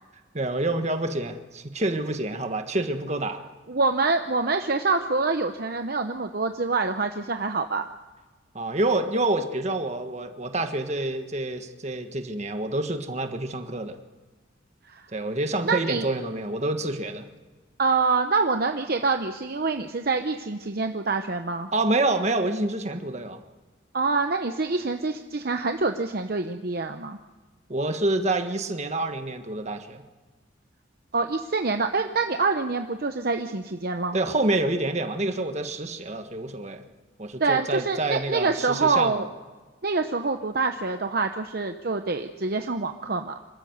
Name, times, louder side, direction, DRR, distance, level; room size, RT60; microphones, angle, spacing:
voice 1, 0.3-3.4 8.5-14.0 15.1-17.3 21.7-23.4 27.7-30.0 34.1-36.8 37.2-39.3, right 2 dB, 35° right, 7 dB, 1.5 m, -27 dB
voice 2, 3.7-7.9 14.9-15.1 15.6-16.0 17.8-21.7 23.9-27.2 31.1-34.2 37.4-39.3 39.8-43.3, right 4 dB, 50° right, 6 dB, 0.9 m, -26 dB
26.0 x 13.5 x 8.0 m, 1.3 s
head